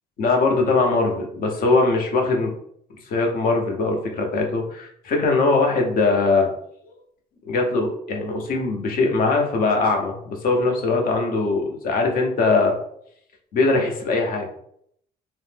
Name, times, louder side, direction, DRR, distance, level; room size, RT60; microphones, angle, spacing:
voice 1, 0.2-2.5 3.1-6.5 6.8-6.9 7.5-12.7 13.5-14.4, left 3 dB, 60° left, 2 dB, 0.7 m, -21 dB
2.5 x 2.0 x 3.3 m, 0.67 s
cardioid pair, 110°, 17 cm